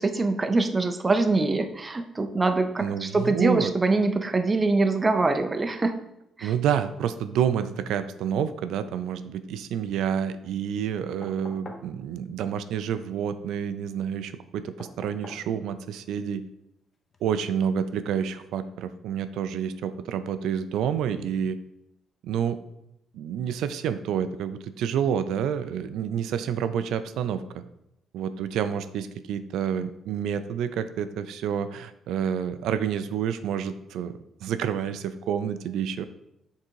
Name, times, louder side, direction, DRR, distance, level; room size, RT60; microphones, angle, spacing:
voice 1, 0.0-5.9 6.4-6.5, right 3 dB, 15° right, 7 dB, 0.4 m, -24 dB
voice 2, 2.8-3.7 6.4-16.4 17.2-21.6 22.2-22.6 23.1-27.4 28.1-34.1 34.4-36.1, right 8 dB, 80° right, 11 dB, 0.4 m, -28 dB
sound 1, 11.2-11.9 14.8-15.5 17.1-17.2, left 2 dB, 25° left, 0.7 m, -43 dB
7.2 x 3.7 x 4.6 m, 0.80 s
cardioid pair, 170°, 0 cm